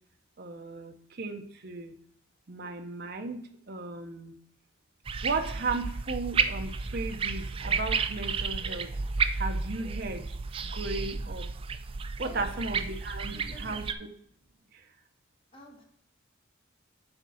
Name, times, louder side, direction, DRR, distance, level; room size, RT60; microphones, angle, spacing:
voice 1, 0.4-1.9 2.5-4.3 5.2-8.9 9.4-10.2 10.7-11.5 12.2-14.1, right 3 dB, 50° right, 5 dB, 0.7 m, -35 dB
sound 1, 5.1-13.9, right 5 dB, 25° right, 0.3 m, -32 dB
voice 2, 13.3-13.8 15.5-15.8, equal, 25° left, 1 dB, 1.4 m, -48 dB
8.0 x 3.7 x 5.7 m, 0.68 s
head